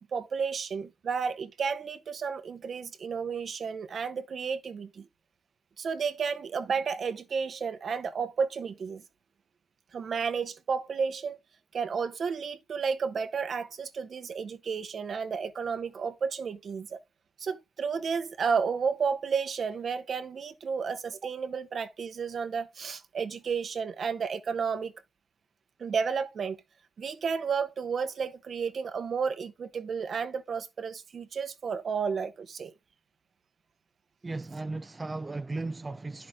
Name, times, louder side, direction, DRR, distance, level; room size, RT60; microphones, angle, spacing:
voice 1, 0.1-5.1 5.8-9.0 9.9-11.4 11.7-17.0 17.4-24.9 25.8-26.6 27.0-32.7, right 6 dB, 50° right, 1.2 m, -32 dB
voice 2, 34.2-36.3, right 3 dB, 20° right, 0.6 m, -36 dB
10.5 x 5.9 x 3.7 m
cardioid pair, 90°, 0 cm